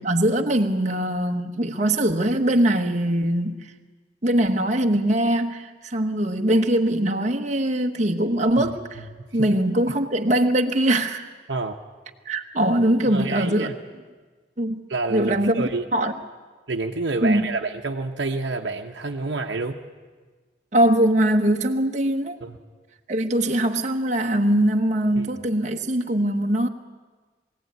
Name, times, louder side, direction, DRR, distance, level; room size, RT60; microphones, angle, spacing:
voice 1, 0.0-3.7 4.2-9.0 9.3-11.3 12.3-13.7 14.6-14.8 15.1-16.1 17.2-17.5 20.7-22.4 23.1-26.7, right 1 dB, 40° right, 3 dB, 1.1 m, -22 dB
voice 2, 11.5-11.8 13.0-13.7 14.9-15.8 16.7-19.8 22.4-22.6 25.2-25.3, right 3 dB, 80° right, 2 dB, 1.0 m, -28 dB
22.0 x 16.0 x 9.3 m, 1.4 s
head